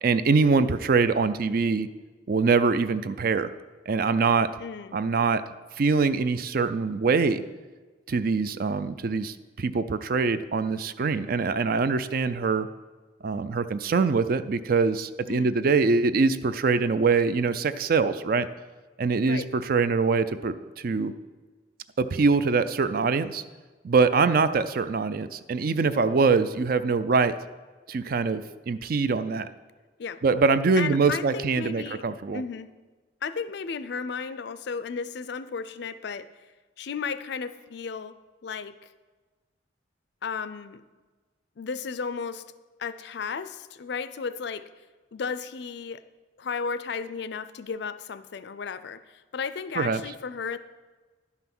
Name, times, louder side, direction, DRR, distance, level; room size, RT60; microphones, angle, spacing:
voice 1, 0.0-1.9 2.3-3.5 3.9-4.5 4.9-5.4 5.8-7.4 8.1-12.7 13.2-18.5 19.0-21.1 22.0-23.4 23.8-27.4 27.9-29.5 30.2-32.4 49.8-50.0, right 4 dB, 50° right, 13 dB, 0.4 m, -24 dB
voice 2, 4.6-5.0 15.3-15.5 19.3-19.5 30.0-30.2 30.8-32.1 32.3-32.7 33.2-36.3 36.8-38.1 38.4-38.7 40.2-40.8 41.6-42.4 42.8-44.6 45.1-46.0 46.4-50.6, left 5 dB, 60° left, 13 dB, 0.4 m, -34 dB
11.0 x 5.7 x 6.0 m, 1.3 s
head